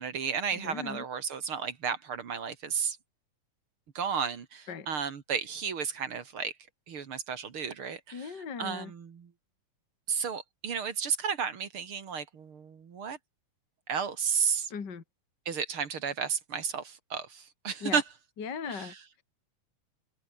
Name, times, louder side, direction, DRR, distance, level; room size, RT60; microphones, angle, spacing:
voice 1, 0.0-3.0 3.9-6.6 6.9-9.3 10.1-13.2 13.9-14.7 15.5-18.0 18.7-18.9, right 6 dB, 45° right, 2.6 m, -33 dB
voice 2, 0.6-1.0 4.7-4.9 8.1-8.9 14.7-15.0 17.8-18.0 18.4-19.2, left 6 dB, 35° left, 2.6 m, -38 dB
omnidirectional pair, 3.5 m